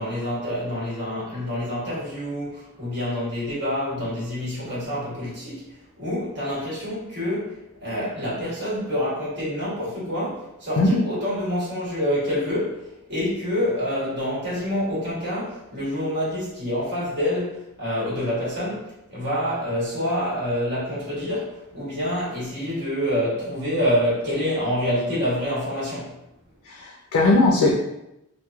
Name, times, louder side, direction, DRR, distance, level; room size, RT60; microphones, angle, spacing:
voice 1, 0.0-26.1, equal, 50° right, -9 dB, 1.3 m, -27 dB
voice 2, 26.7-27.8, left 2 dB, 60° left, -1 dB, 0.3 m, -19 dB
2.9 x 2.1 x 2.2 m, 0.87 s
head